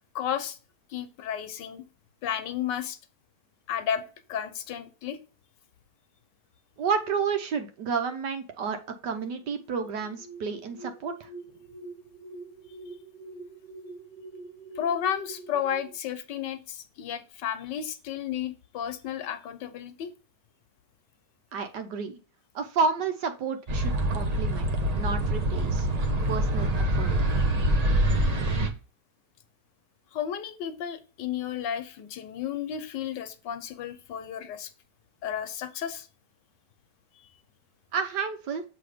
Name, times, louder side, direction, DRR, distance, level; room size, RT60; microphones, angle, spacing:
voice 1, 0.1-0.6 0.9-1.8 2.2-3.0 3.7-4.0 4.3-5.2 14.8-20.1 30.1-34.7 35.2-36.1, left 9 dB, 80° left, 10 dB, 1.5 m, -32 dB
voice 2, 6.8-11.3 21.5-22.2 22.5-24.7 24.9-25.9 26.3-27.1 37.9-38.6, right 5 dB, 75° right, 7 dB, 1.6 m, -30 dB
sound 1, 9.5-15.9, right 3 dB, 20° right, 1.8 m, -45 dB
sound 2, 23.7-28.7, right 1 dB, 45° right, 0.5 m, -25 dB
7.2 x 3.5 x 5.0 m, 0.34 s
omnidirectional pair, 1.9 m